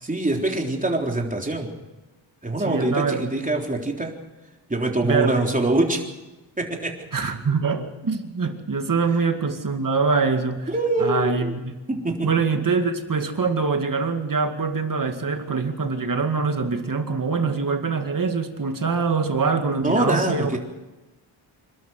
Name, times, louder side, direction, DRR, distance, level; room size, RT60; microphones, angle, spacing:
voice 1, 0.0-1.7 2.4-4.1 4.7-6.0 6.6-7.1 10.7-11.5 11.9-12.3 19.8-20.6, right 2 dB, 15° right, 1 dB, 3.7 m, -24 dB
voice 2, 2.6-3.4 5.0-5.3 7.1-10.7 11.0-11.8 12.2-20.6, right 4 dB, 45° right, 6 dB, 2.2 m, -24 dB
27.0 x 12.5 x 7.7 m, 1.1 s
cardioid pair, 90°, 46 cm